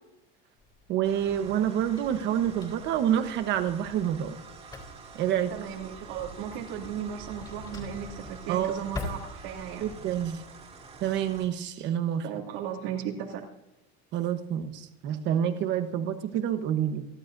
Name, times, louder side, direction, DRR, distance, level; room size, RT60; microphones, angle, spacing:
Drawer open or close, 0.6-9.9, left 3 dB, 15° left, 3.5 m, -45 dB
voice 1, 0.9-4.4 5.1-5.5 8.5-8.8 9.8-10.4 11.0-12.3 14.1-17.1, right 10 dB, 40° right, 9 dB, 1.2 m, -28 dB
sound 1, 1.0-11.5, right 4 dB, 20° right, 2.7 m, -47 dB
voice 2, 5.5-9.8 12.2-13.5, right 9 dB, 75° right, -1 dB, 2.9 m, -36 dB
29.0 x 11.5 x 2.7 m, 0.89 s
cardioid pair, 175°, 29 cm